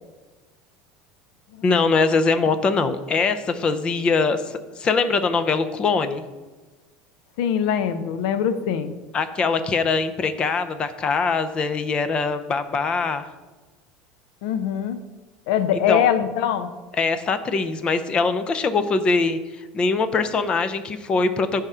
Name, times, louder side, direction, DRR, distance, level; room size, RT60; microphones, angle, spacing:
voice 1, 1.6-6.2 9.1-13.3 15.9-16.1 16.9-21.6, left 4 dB, 30° left, 11 dB, 0.4 m, -22 dB
voice 2, 7.4-8.9 14.4-15.0 15.5-16.7, left 9 dB, 75° left, 11 dB, 0.5 m, -22 dB
5.5 x 3.6 x 5.4 m, 1.2 s
supercardioid pair, 130°, 4 cm